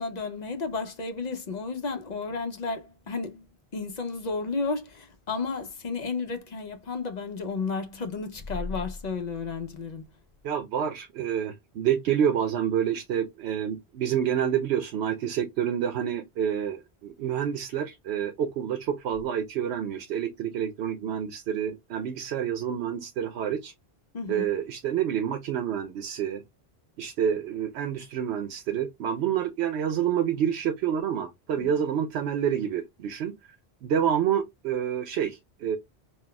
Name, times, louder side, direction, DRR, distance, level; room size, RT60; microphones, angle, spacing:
voice 1, 0.0-3.5 3.7-10.0 24.1-24.5 31.6-31.7, left 4 dB, 50° left, 0.6 m, -32 dB
voice 2, 10.4-23.7 24.3-26.4 27.0-33.5 33.8-35.8, right 9 dB, 80° right, 0.8 m, -28 dB
5.5 x 2.2 x 2.2 m
omnidirectional pair, 1.1 m